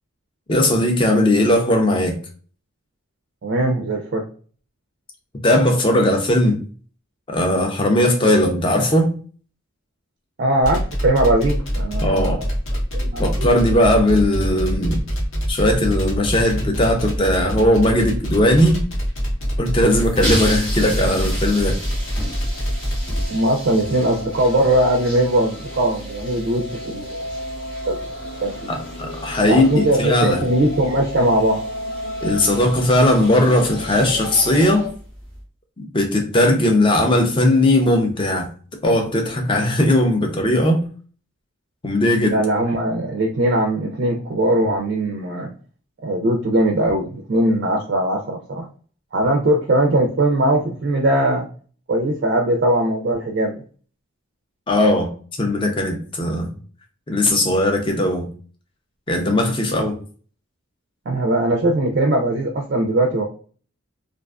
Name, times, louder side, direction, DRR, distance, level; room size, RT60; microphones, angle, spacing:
voice 1, 0.5-2.2 5.4-6.6 7.3-9.1 12.0-12.4 13.2-15.0 15.5-18.8 19.6-21.8 28.7-30.4 32.2-34.8 35.9-38.5 38.8-40.8 41.8-42.4 54.7-55.1 55.4-56.5 57.1-58.3 59.1-60.0, left 1 dB, 25° left, 0.4 m, -18 dB
voice 2, 3.4-4.2 10.4-12.5 12.9-13.5 23.3-27.2 27.8-28.0 28.4-28.7 29.5-31.6 42.3-45.5 46.0-48.7 49.1-51.4 51.9-53.6 61.1-63.2, right 1 dB, 50° right, 0.4 m, -20 dB
sound 1, 10.6-23.3, equal, 70° left, 0.8 m, -24 dB
sound 2, 19.4-34.9, left 1 dB, 45° left, 0.8 m, -34 dB
sound 3, 20.0-35.4, equal, 5° left, 0.9 m, -34 dB
2.4 x 2.3 x 2.3 m
head